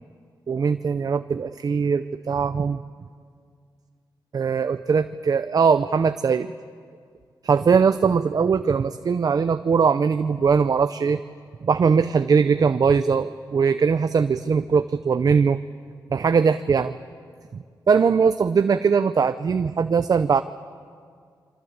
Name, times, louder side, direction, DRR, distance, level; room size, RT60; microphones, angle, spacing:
voice 1, 0.5-2.8 4.3-6.5 7.4-11.2 11.6-15.6 16.1-17.0 17.9-20.4, right 5 dB, 55° right, 10 dB, 0.7 m, -20 dB
26.5 x 24.5 x 8.1 m, 2.1 s
wide cardioid pair, 90°, 8 cm